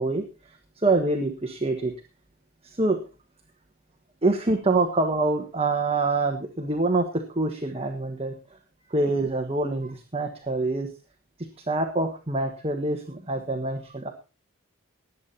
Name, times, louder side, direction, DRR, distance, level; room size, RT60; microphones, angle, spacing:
voice 1, 0.0-1.9 2.6-3.0 4.2-8.6 8.9-10.9 11.4-14.1, right 2 dB, 25° right, 4 dB, 1.3 m, -26 dB
19.0 x 8.4 x 4.3 m, 0.31 s
head